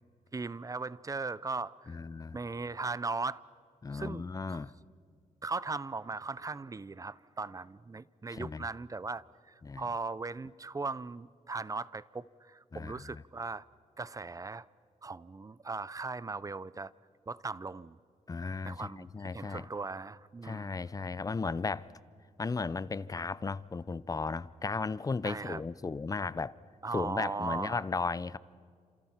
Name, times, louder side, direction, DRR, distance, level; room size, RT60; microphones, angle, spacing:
voice 1, 0.3-2.0 2.3-3.4 3.9-4.2 5.4-13.6 14.0-14.7 15.0-16.9 17.3-18.0 18.6-19.1 19.3-20.8 25.2-25.6 26.8-27.8, right 3 dB, 25° right, 0.5 m, -38 dB
voice 2, 1.9-2.4 3.8-4.7 8.3-8.7 9.6-9.9 12.7-13.2 18.3-19.7 20.4-21.9 22.4-26.5 26.9-28.4, left 4 dB, 25° left, 0.5 m, -35 dB
29.5 x 27.0 x 5.8 m
wide cardioid pair, 110°, 14 cm